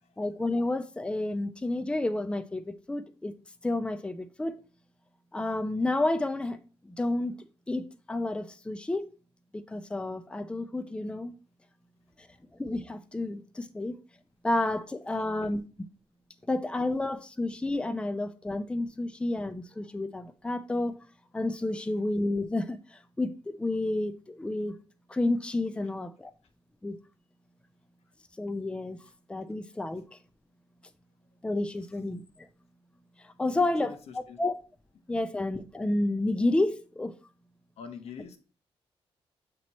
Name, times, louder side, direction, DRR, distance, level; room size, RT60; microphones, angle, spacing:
voice 1, 0.2-3.3 3.6-4.6 5.3-7.4 7.7-9.1 9.5-11.3 12.6-13.9 14.4-15.6 16.5-21.0 21.3-24.7 25.1-26.3 26.8-27.0 28.4-29.0 29.3-30.0 31.4-32.2 33.4-34.5 35.1-37.1, left 2 dB, 10° left, 0.5 m, -30 dB
voice 2, 15.1-15.5 21.7-21.8 25.8-25.9 29.9-30.0 33.5-34.4 37.8-38.4, left 6 dB, 85° left, 0.9 m, -45 dB
7.7 x 3.0 x 4.1 m
cardioid pair, 110°, 11 cm